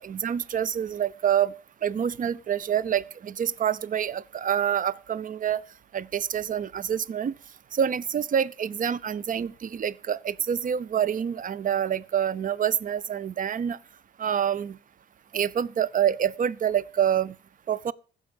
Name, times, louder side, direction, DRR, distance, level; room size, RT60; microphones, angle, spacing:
voice 1, 0.0-1.5 1.8-5.6 5.9-7.3 7.7-13.8 14.2-14.8 15.3-17.3 17.7-17.9, right 9 dB, 40° right, 0.6 m, -27 dB
15.0 x 6.0 x 7.0 m
cardioid pair, 90°, 20 cm